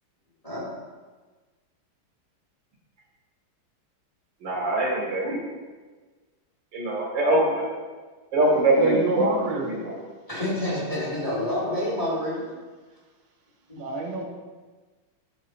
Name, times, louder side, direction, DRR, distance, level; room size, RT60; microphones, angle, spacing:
voice 1, 4.4-5.4 6.7-7.7 8.3-9.3 9.6-10.0, right 1 dB, 60° right, -3 dB, 2.2 m, -23 dB
voice 2, 8.7-9.7 13.8-14.2, right 2 dB, 80° right, 0 dB, 1.7 m, -28 dB
voice 3, 10.3-12.4 13.7-13.8, left 1 dB, 20° left, -6 dB, 1.5 m, -28 dB
11.0 x 5.4 x 2.4 m, 1.3 s
omnidirectional pair, 2.3 m